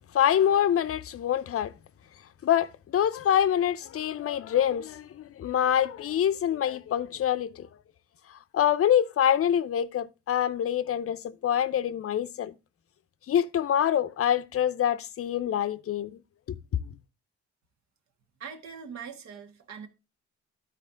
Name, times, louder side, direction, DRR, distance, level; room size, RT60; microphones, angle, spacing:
voice 1, 0.1-1.7 2.4-7.7 8.5-12.5 13.3-16.1 16.5-16.6, left 10 dB, 50° left, 0.6 m, -25 dB
voice 2, 18.4-19.9, right 6 dB, 65° right, 1.6 m, -42 dB
12.5 x 4.3 x 3.7 m
cardioid pair, 90°, 30 cm